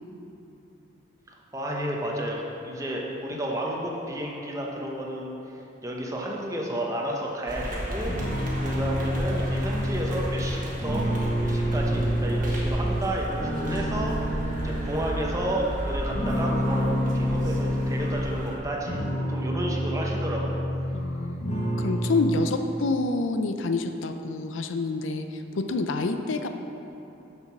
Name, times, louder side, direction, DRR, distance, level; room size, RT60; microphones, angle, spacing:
voice 1, 1.5-5.4 5.8-8.1 8.6-11.1 11.4-14.2 14.6-19.0 19.3-20.6, right 1 dB, 15° right, -2 dB, 0.9 m, -31 dB
sound 1, 7.5-18.6, equal, 40° right, 1.3 m, -33 dB
sound 2, 8.1-13.0 13.4-15.6 16.1-18.2 18.7-21.1 21.4-22.3, equal, 35° left, 1.3 m, -28 dB
voice 2, 20.9-26.5, left 3 dB, 80° left, 7 dB, 0.5 m, -28 dB
7.1 x 6.7 x 6.0 m, 2.9 s
head